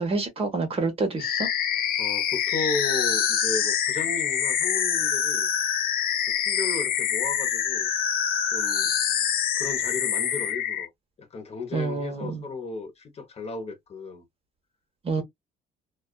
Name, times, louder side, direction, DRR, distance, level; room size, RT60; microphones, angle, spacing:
voice 1, 0.0-1.5 11.7-12.5 15.0-15.2, right 3 dB, 35° right, 1.0 m, -27 dB
sound 1, 1.2-10.9, left 9 dB, 65° left, 0.6 m, -25 dB
voice 2, 2.0-5.5 6.4-7.9 8.5-8.9 9.6-10.9 11.2-14.2 15.1-15.2, left 3 dB, 40° left, 0.9 m, -34 dB
2.4 x 2.3 x 2.3 m
cardioid pair, 110°, 17 cm